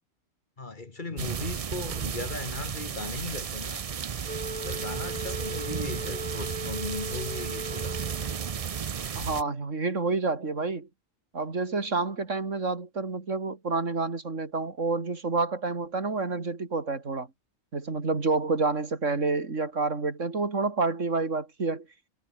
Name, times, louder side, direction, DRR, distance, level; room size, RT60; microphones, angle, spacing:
voice 1, 0.6-3.8 4.5-8.0, left 3 dB, 40° left, 1.7 m, -37 dB
sound 1, 1.2-9.4, right 7 dB, 45° right, 0.4 m, -34 dB
Wind instrument woodwind instrument, 4.2-8.6, right 1 dB, 30° right, 7.8 m, -38 dB
voice 2, 9.1-10.9 11.3-17.3 17.7-21.8, right 3 dB, 70° right, 3.1 m, -29 dB
omnidirectional pair, 1.4 m